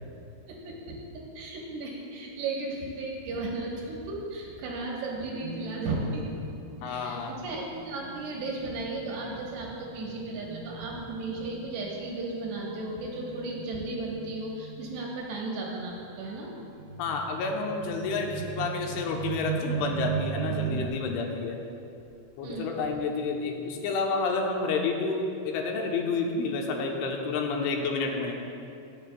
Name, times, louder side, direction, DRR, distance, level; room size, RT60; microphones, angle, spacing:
voice 1, 0.5-6.3 6.8-16.5 22.4-22.7, right 2 dB, 70° right, -2 dB, 3.0 m, -35 dB
sound 1, 5.1-13.7, right 2 dB, 55° right, 2.3 m, -47 dB
voice 2, 6.8-7.3 17.0-21.6 22.4-28.3, left 4 dB, 85° left, 2 dB, 3.1 m, -30 dB
sound 2, 8.0-11.6 12.2-15.4 16.5-21.7 22.0-22.2, left 2 dB, 65° left, 2.6 m, -48 dB
sound 3, 16.8-20.9, right 10 dB, 90° right, 3.2 m, -34 dB
21.5 x 7.5 x 2.2 m, 2.6 s
omnidirectional pair, 5.6 m